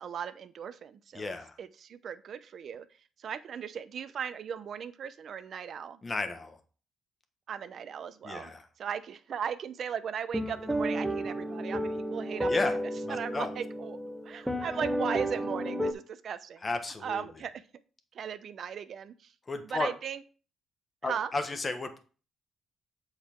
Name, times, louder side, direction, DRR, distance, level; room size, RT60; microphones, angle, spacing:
voice 1, 0.0-1.3 1.6-2.9 3.2-6.0 7.5-8.5 8.8-12.5 13.1-14.0 14.2-16.7 17.0-17.6 18.1-19.3 19.6-20.2 21.0-21.3, right 7 dB, 60° right, 12 dB, 0.7 m, -37 dB
voice 2, 1.1-1.6 6.0-6.6 8.2-8.6 12.5-12.8 13.0-13.5 16.6-17.2 19.5-19.9 21.0-22.0, left 3 dB, 30° left, 6 dB, 1.3 m, -33 dB
sound 1, 10.3-15.9, equal, 5° right, 1.3 m, -32 dB
8.0 x 4.9 x 4.5 m, 0.37 s
cardioid pair, 90°, 0 cm